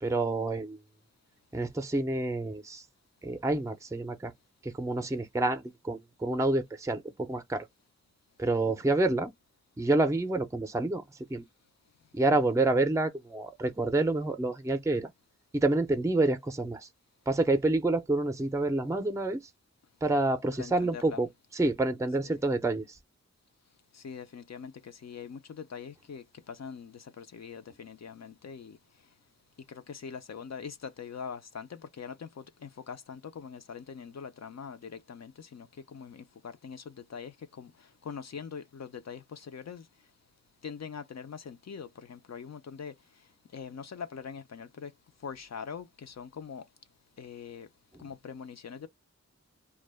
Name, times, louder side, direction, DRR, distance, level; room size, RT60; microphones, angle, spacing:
voice 1, 0.0-0.8 1.5-2.8 3.2-4.3 4.6-7.6 8.4-9.3 9.8-11.0 11.3-11.4 12.1-15.1 15.5-16.8 17.3-19.4 20.0-22.8, right 2 dB, 10° right, 0.4 m, -28 dB
voice 2, 24.0-24.7 25.0-25.4 25.7-26.2 26.6-26.8 27.4-27.6 28.0-28.1 28.4-28.6 30.0-30.7 31.0-31.7 32.0-32.1 33.1-34.8 36.0-36.1 36.6-36.8 37.1-37.3 38.1-38.6 39.1-39.2 39.5-39.8 40.6-41.9 42.3-42.9 43.5-43.8 44.1-44.9 45.2-45.8 46.2-46.6 47.2-47.6 48.0-48.9, left 6 dB, 65° left, 0.4 m, -41 dB
2.2 x 2.1 x 3.3 m
wide cardioid pair, 55°, 29 cm